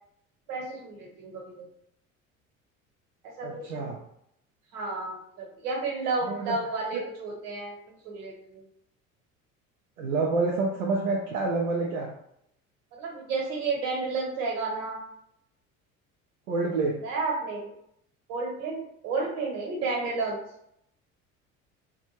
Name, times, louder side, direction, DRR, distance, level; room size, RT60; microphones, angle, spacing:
voice 1, 0.5-1.7 3.2-3.9 4.7-7.8 8.0-8.6 12.9-15.0 16.9-17.7 18.3-20.4, right 3 dB, 55° right, -1 dB, 1.1 m, -32 dB
voice 2, 3.4-4.0 6.2-6.6 6.9-7.0 10.0-12.1 16.5-17.0, right 3 dB, 75° right, -2 dB, 0.5 m, -28 dB
2.5 x 2.3 x 2.9 m, 0.75 s
figure-of-eight pair, 60°, 41 cm